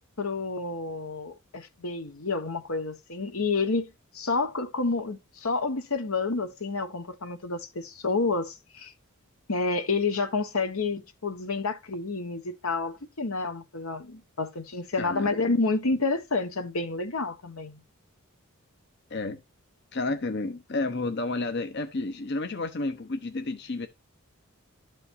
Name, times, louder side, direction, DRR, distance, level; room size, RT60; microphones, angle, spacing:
voice 1, 0.2-3.9 4.1-8.9 9.5-17.8, left 3 dB, 80° left, 1.4 m, -29 dB
voice 2, 15.0-15.3 19.1-19.4 19.9-23.9, left 2 dB, 50° left, 0.8 m, -31 dB
12.5 x 5.2 x 2.7 m
head